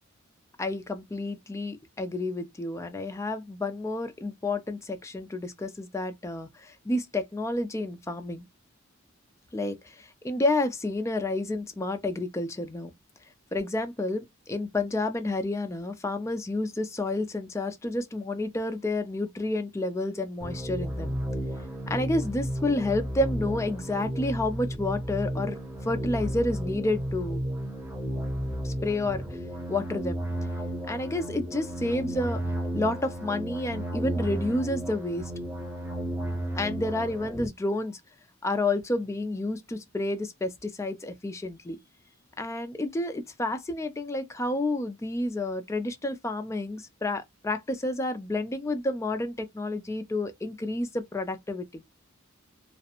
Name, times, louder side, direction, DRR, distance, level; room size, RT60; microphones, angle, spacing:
voice 1, 0.6-8.5 9.5-12.9 13.5-21.1 21.9-27.4 28.6-29.2 29.7-30.2 30.9-32.4 32.7-35.3 36.5-38.0 38.4-41.8 42.4-51.8, left 2 dB, 15° left, 0.3 m, -30 dB
sound 1, 20.4-37.5, right 1 dB, 10° right, 0.7 m, -33 dB
2.4 x 2.0 x 2.8 m
head